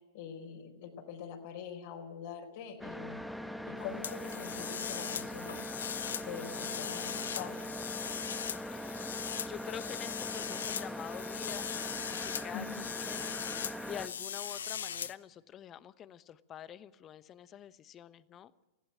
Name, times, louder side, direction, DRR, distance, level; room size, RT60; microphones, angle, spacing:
voice 1, 0.0-5.6 6.2-8.0 12.4-12.8, left 7 dB, 55° left, 1 dB, 4.2 m, -45 dB
sound 1, 2.8-14.1, equal, ahead, 1.3 m, -41 dB
sound 2, 4.0-15.1, left 8 dB, 75° left, 0.8 m, -40 dB
voice 2, 9.4-18.6, left 10 dB, 30° left, 15 dB, 1.0 m, -47 dB
20.0 x 15.5 x 8.9 m, 1.1 s
hypercardioid pair, 110°, 0 cm